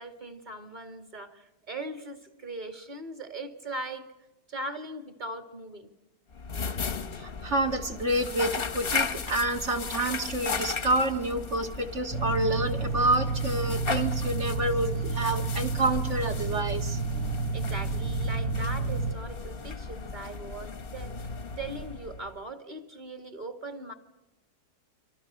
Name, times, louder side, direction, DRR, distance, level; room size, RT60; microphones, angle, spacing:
voice 1, 0.0-4.1 4.5-5.9 17.5-21.3 21.6-23.9, right 2 dB, 25° right, 8 dB, 2.1 m, -39 dB
sound 1, 6.3-22.5, left 5 dB, 40° left, 1.1 m, -36 dB
voice 2, 7.2-17.0, right 1 dB, 45° right, 5 dB, 2.1 m, -28 dB
sound 2, 12.1-19.1, right 3 dB, 60° right, 1.8 m, -30 dB
29.5 x 25.0 x 6.5 m, 0.98 s
omnidirectional pair, 1.8 m